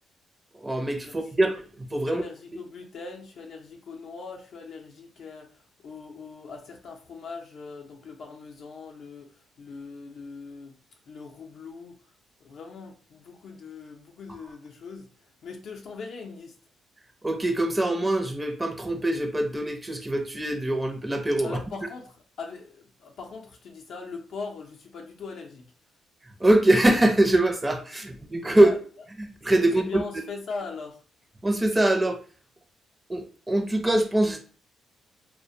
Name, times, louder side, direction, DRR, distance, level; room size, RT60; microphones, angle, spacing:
voice 1, 0.5-2.2 17.2-21.6 26.2-28.7 29.2-30.0 31.4-32.2 33.1-34.4, right 1 dB, 15° right, 4 dB, 0.5 m, -23 dB
voice 2, 1.1-1.5 2.1-10.8 11.1-12.0 12.4-15.1 15.4-16.6 21.4-25.6 27.9-28.1 28.4-28.8 29.7-31.0, left 4 dB, 65° left, 1 dB, 0.5 m, -40 dB
2.4 x 2.1 x 2.6 m, 0.41 s
cardioid pair, 90°, 0 cm